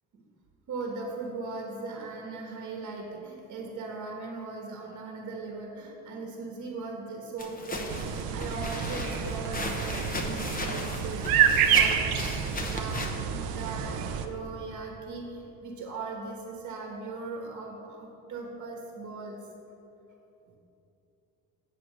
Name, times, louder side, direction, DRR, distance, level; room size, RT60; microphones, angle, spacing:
voice 1, 0.7-11.3 11.6-19.4, right 3 dB, 60° right, 0 dB, 1.3 m, -39 dB
sound 1, 7.4-13.1, left 2 dB, 25° left, 1.0 m, -36 dB
sound 2, 7.9-14.3, right 8 dB, 90° right, 0.6 m, -28 dB
8.1 x 4.7 x 6.4 m, 2.9 s
cardioid pair, 100°, 34 cm